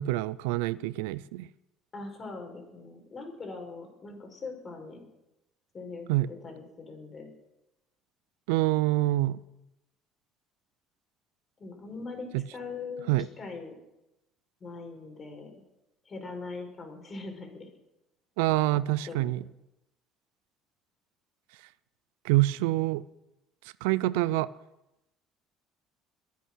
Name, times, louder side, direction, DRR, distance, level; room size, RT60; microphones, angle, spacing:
voice 1, 0.0-1.5 6.1-6.3 8.5-9.4 12.3-12.4 13.1-13.3 18.4-19.4 22.2-23.0 23.8-24.5, right 17 dB, 90° right, 19 dB, 0.4 m, -26 dB
voice 2, 1.9-5.0 5.7-7.3 11.6-13.1 13.4-13.7 14.6-15.5 16.1-17.7 19.0-19.3, left 3 dB, 35° left, 4 dB, 5.0 m, -41 dB
23.0 x 8.3 x 6.2 m, 0.91 s
supercardioid pair, 90°, 0 cm